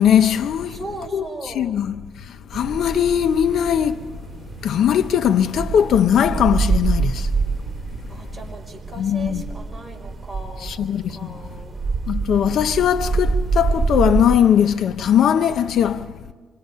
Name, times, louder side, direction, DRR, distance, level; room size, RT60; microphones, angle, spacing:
voice 1, 0.0-0.8 1.1-4.1 4.6-7.3 9.0-9.4 10.6-11.3 12.1-16.1, left 9 dB, 70° left, 0.7 m, -19 dB
voice 2, 0.7-1.8 5.7-5.8 8.1-10.7 11.2-11.8, right 2 dB, 5° right, 5.7 m, -37 dB
sound 1, 2.5-14.4, right 4 dB, 30° right, 3.0 m, -26 dB
26.5 x 22.5 x 5.6 m
cardioid pair, 90°, 0 cm